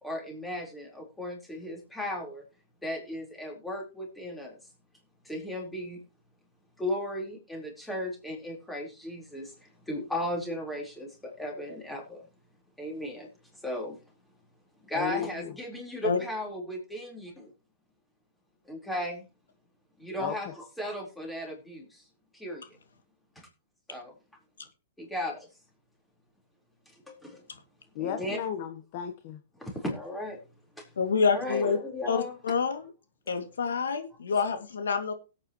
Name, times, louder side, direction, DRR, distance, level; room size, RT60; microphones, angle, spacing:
voice 1, 0.0-2.4 2.8-4.6 5.2-6.0 6.8-12.2 12.8-13.3 13.6-14.0 14.8-17.5 18.7-19.2 20.0-22.0 22.3-22.6 23.4-23.5 23.9-24.1 25.0-25.5 27.1-27.4 28.0-28.4 29.6-30.4 30.8-30.9 31.3-32.4 34.3-34.4, left 1 dB, 5° left, 4.2 m, -36 dB
voice 2, 14.9-15.5 20.2-20.5 27.9-29.4, left 9 dB, 45° left, 1.2 m, -35 dB
voice 3, 31.0-31.8 32.1-32.9 33.3-35.1, left 5 dB, 90° left, 2.4 m, -27 dB
17.0 x 8.8 x 3.1 m
hypercardioid pair, 145°, 0 cm